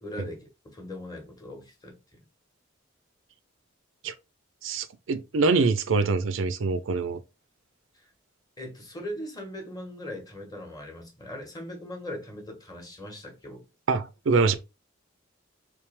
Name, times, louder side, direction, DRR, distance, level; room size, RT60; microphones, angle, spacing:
voice 1, 0.0-2.2 7.9-8.0 8.6-13.6, left 1 dB, 20° left, 1.1 m, -40 dB
voice 2, 4.6-7.2 13.9-14.6, right 4 dB, 70° right, 0.5 m, -24 dB
3.2 x 3.2 x 3.3 m
head